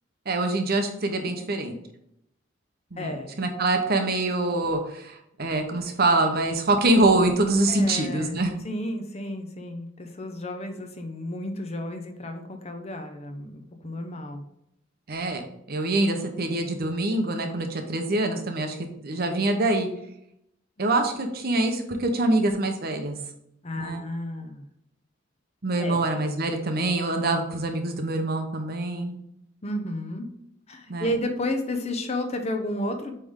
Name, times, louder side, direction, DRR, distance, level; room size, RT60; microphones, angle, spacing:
voice 1, 0.3-1.8 2.9-8.5 15.1-19.9 20.8-23.2 23.8-24.0 25.6-29.1 30.9-31.1, right 2 dB, 55° right, 5 dB, 0.9 m, -25 dB
voice 2, 3.0-3.4 7.7-14.4 23.6-24.7 25.8-26.0 29.6-30.3 30.7-33.1, left 1 dB, 35° left, 5 dB, 0.8 m, -32 dB
8.2 x 3.4 x 3.7 m, 0.78 s
head